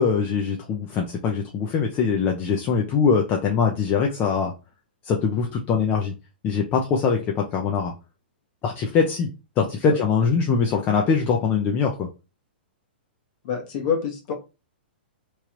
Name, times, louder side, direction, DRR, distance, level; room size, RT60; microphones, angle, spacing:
voice 1, 0.0-4.5 5.0-6.1 6.4-7.9 8.6-9.3 9.6-12.1, left 5 dB, 30° left, 1 dB, 0.5 m, -22 dB
voice 2, 13.4-14.3, left 7 dB, 45° left, 3 dB, 1.1 m, -26 dB
3.0 x 2.4 x 3.0 m, 0.29 s
hypercardioid pair, 120°, 6 cm